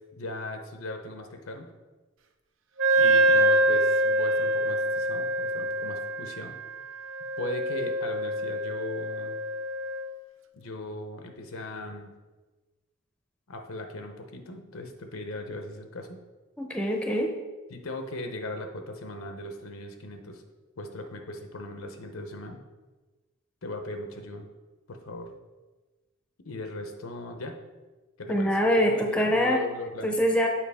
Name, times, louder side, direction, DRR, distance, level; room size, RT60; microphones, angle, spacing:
voice 1, 0.0-1.7 3.0-6.5 7.4-9.4 10.5-12.1 13.5-16.2 17.7-20.4 20.8-22.6 23.6-24.5 24.9-25.3 26.4-27.6 28.2-28.6 28.8-30.2, left 2 dB, 80° left, 5 dB, 0.8 m, -38 dB
Wind instrument woodwind instrument, 2.8-10.1, right 1 dB, 65° right, 0.5 m, -25 dB
voice 2, 16.6-17.3 28.3-29.6 30.0-30.5, equal, 5° left, 1 dB, 0.6 m, -24 dB
7.4 x 4.6 x 3.5 m, 1.2 s
head